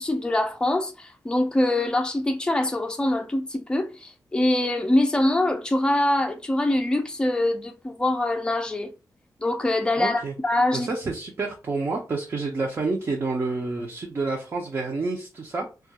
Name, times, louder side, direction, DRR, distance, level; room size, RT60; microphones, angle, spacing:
voice 1, 0.0-8.9 9.4-10.9, left 1 dB, 10° left, 0.5 m, -24 dB
voice 2, 10.0-10.3 10.7-15.7, right 3 dB, 35° right, 0.6 m, -28 dB
2.3 x 2.3 x 2.8 m
wide cardioid pair, 125°, 7 cm